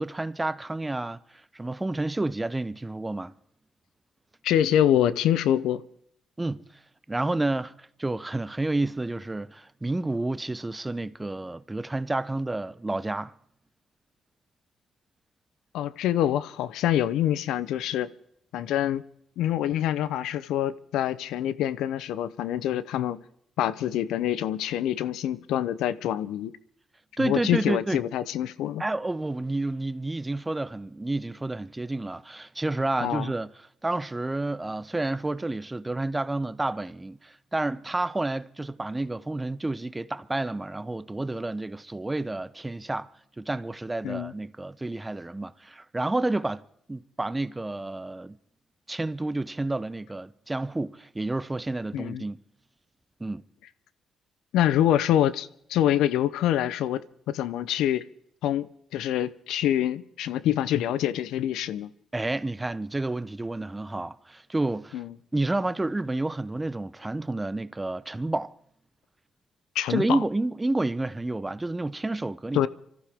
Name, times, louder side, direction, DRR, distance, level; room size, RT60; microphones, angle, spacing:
voice 1, 0.0-3.3 6.4-6.6 7.1-13.4 27.2-28.0 28.8-43.1 43.4-48.4 48.9-52.4 53.2-53.5 62.1-65.0 65.3-68.5 69.9-72.7, right 2 dB, 15° right, 0.6 m, -30 dB
voice 2, 4.4-5.8 15.7-18.1 18.5-19.0 19.4-23.2 23.6-26.5 27.2-28.8 33.0-33.3 44.0-44.3 51.9-52.2 54.5-58.0 58.4-61.9 64.9-65.1 69.8-70.2 72.5-72.7, left 11 dB, 85° left, 0.6 m, -26 dB
25.0 x 14.5 x 3.5 m
cardioid pair, 90°, 0 cm